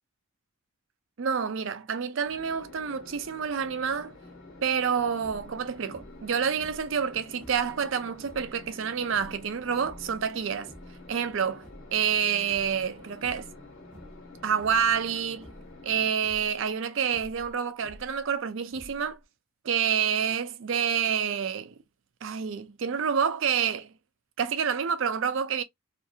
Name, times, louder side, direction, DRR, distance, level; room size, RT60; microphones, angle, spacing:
voice 1, 1.2-4.1 4.6-10.7 11.1-11.6 11.9-13.4 14.4-15.5 15.8-19.2 19.6-21.7 22.2-23.9 24.4-25.6, right 7 dB, 60° right, 0.4 m, -28 dB
sound 1, 2.2-16.1, left 2 dB, 70° left, 1.2 m, -49 dB
sound 2, 5.1-5.6 5.9-6.3 6.6-7.7 8.1-8.5 9.1-10.2 10.5-11.0 11.4-12.2 12.5-12.8 13.1-13.6 13.9-14.3 14.6-14.9 15.4-15.8 16.1-16.5 17.1-18.2 18.7-19.2, equal, 5° left, 0.7 m, -50 dB
2.6 x 2.5 x 2.3 m
head